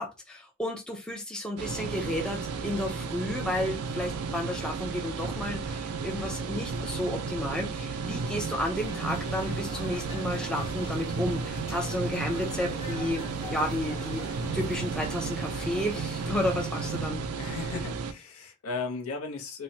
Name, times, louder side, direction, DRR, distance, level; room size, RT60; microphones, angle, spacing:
voice 1, 0.0-17.3, left 1 dB, 5° left, 0.4 m, -32 dB
sound 1, 1.6-18.1, right 4 dB, 80° right, 0.4 m, -33 dB
sound 2, 8.8-17.1, left 2 dB, 25° left, 0.8 m, -44 dB
voice 2, 17.4-19.6, left 4 dB, 70° left, 0.7 m, -36 dB
3.0 x 2.1 x 2.7 m
head